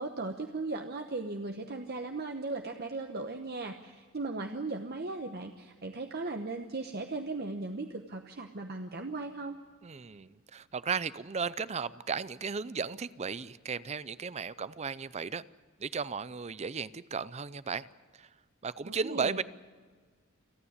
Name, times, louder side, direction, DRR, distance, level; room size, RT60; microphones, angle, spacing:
voice 1, 0.0-9.6 18.8-19.4, right 3 dB, 50° right, 5 dB, 1.0 m, -37 dB
voice 2, 9.8-15.4 15.8-17.9 18.2-18.3 18.6-19.4, right 5 dB, 30° right, 17 dB, 0.5 m, -35 dB
28.5 x 9.9 x 9.7 m, 1.5 s
head